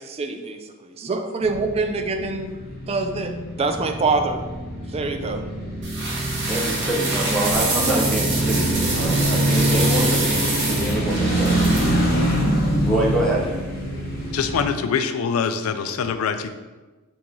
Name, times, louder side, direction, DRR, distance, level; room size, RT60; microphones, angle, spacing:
voice 1, 0.0-2.5 2.9-4.4 4.9-5.4, right 3 dB, 30° right, 6 dB, 0.3 m, -25 dB
sound 1, 1.4-14.7, right 1 dB, 45° left, 1.1 m, -24 dB
sound 2, 5.8-11.9, right 2 dB, 55° right, 1.1 m, -26 dB
voice 2, 6.5-11.6 12.8-13.5, right 1 dB, 5° left, -4 dB, 0.8 m, -25 dB
voice 3, 14.3-16.5, left 6 dB, 85° left, 9 dB, 0.4 m, -24 dB
3.8 x 2.9 x 3.7 m, 1.2 s
head